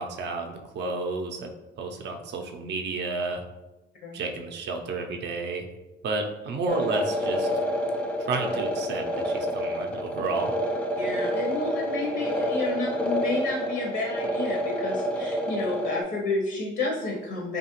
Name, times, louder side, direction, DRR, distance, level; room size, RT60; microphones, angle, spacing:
voice 1, 0.0-1.5 1.8-3.4 4.1-5.7 6.0-7.5 8.2-10.5, right 3 dB, 60° right, 4 dB, 0.5 m, -31 dB
sound 1, 6.7-16.0, equal, 5° left, 0.3 m, -28 dB
voice 2, 11.0-17.6, left 2 dB, 65° left, -1 dB, 0.5 m, -30 dB
2.8 x 2.3 x 2.8 m, 1.0 s
cardioid pair, 90°, 20 cm